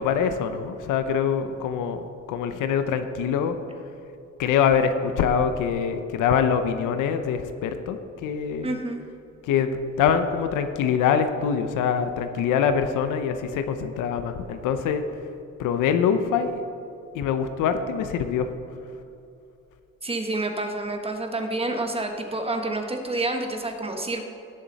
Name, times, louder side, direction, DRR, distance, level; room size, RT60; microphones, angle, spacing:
voice 1, 0.0-3.6 4.4-8.8 9.4-15.0 15.6-16.6 17.1-18.5, left 7 dB, 90° left, 8 dB, 0.8 m, -24 dB
voice 2, 8.6-9.0 20.0-24.2, right 2 dB, 20° right, 4 dB, 1.5 m, -28 dB
17.5 x 7.2 x 4.1 m, 2.6 s
cardioid pair, 90°, 30 cm